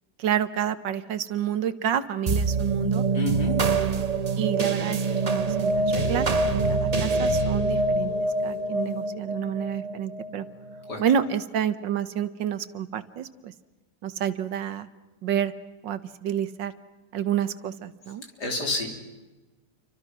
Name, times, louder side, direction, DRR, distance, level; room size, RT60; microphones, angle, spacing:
voice 1, 0.2-3.0 3.7-4.0 4.4-5.0 5.3-8.1 8.4-10.5 11.0-13.5 14.0-14.9 15.2-15.5 15.8-16.7 17.1-18.2, right 9 dB, 75° right, 13 dB, 1.7 m, -29 dB
sound 1, 2.3-11.0, right 3 dB, 30° right, 0.8 m, -25 dB
voice 2, 3.1-3.6 10.8-11.2 18.4-19.0, left 2 dB, 60° left, 3 dB, 4.4 m, -30 dB
29.0 x 25.0 x 6.1 m, 1.2 s
omnidirectional pair, 2.0 m